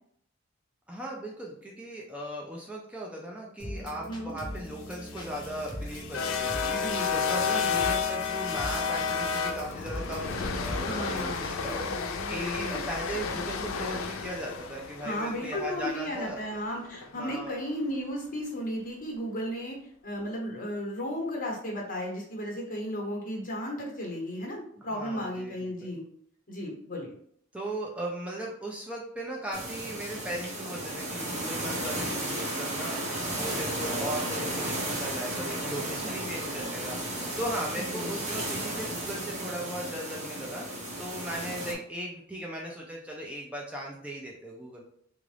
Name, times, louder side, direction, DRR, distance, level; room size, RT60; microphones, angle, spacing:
voice 1, 0.9-16.4 17.1-17.6 24.9-26.0 27.5-40.7 41.0-44.8, right 1 dB, 5° right, -2 dB, 0.4 m, -38 dB
sound 1, 3.6-11.9, equal, 25° left, 0.9 m, -41 dB
sound 2, 4.9-17.1, left 5 dB, 90° left, 0.4 m, -32 dB
voice 2, 6.7-7.4 10.8-12.8 15.0-19.8 20.0-26.0 26.5-27.1 37.7-38.2, equal, 45° left, -1 dB, 1.2 m, -35 dB
sound 3, 29.5-41.7, right 1 dB, 35° right, 1.0 m, -34 dB
3.7 x 2.5 x 3.2 m, 0.67 s
head